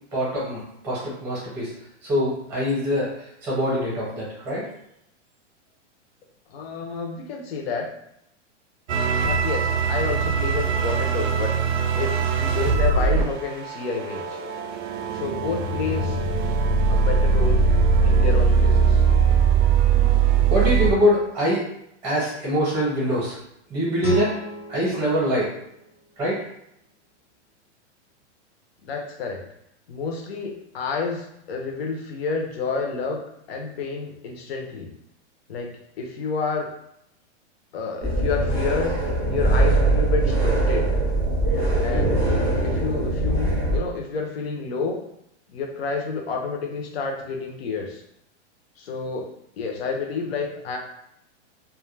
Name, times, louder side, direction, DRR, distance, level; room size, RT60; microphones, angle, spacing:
voice 1, 0.1-1.7 2.0-4.7 20.5-21.6 22.0-23.4 23.7-24.3 24.7-25.5 26.2-26.4, equal, 10° right, -7 dB, 0.7 m, -24 dB
voice 2, 6.5-7.9 9.2-14.4 15.1-16.2 16.9-17.7 18.0-19.0 28.8-29.4 29.9-34.9 35.5-35.7 36.0-36.7 37.7-38.9 39.3-40.9 41.5-45.0 45.5-48.0 48.8-49.3 49.6-50.8, left 4 dB, 55° left, 1 dB, 0.6 m, -30 dB
sound 1, 8.9-20.9, right 5 dB, 85° right, 0.5 m, -21 dB
Guitar, 24.0-26.8, left 1 dB, 80° left, 0.8 m, -34 dB
sound 2, 38.0-43.8, right 2 dB, 10° left, 0.4 m, -22 dB
2.2 x 2.1 x 3.1 m, 0.76 s
supercardioid pair, 180°, 36 cm